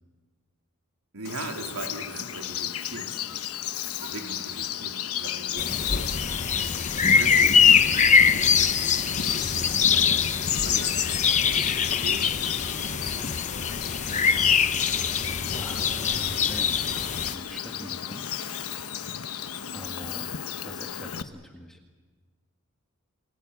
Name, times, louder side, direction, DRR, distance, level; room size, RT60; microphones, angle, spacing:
voice 1, 1.1-3.1 4.0-6.3 6.8-15.1, right 2 dB, 85° right, 2 dB, 3.4 m, -41 dB
Bird vocalization bird call bird song, 1.2-21.2, left 9 dB, 75° left, 1.1 m, -33 dB
sound 1, 5.6-17.3, left 6 dB, 35° left, 0.8 m, -23 dB
voice 2, 15.2-18.3 19.7-20.3 20.6-21.8, equal, ahead, 1 dB, 1.8 m, -43 dB
28.5 x 20.5 x 8.2 m, 1.4 s
head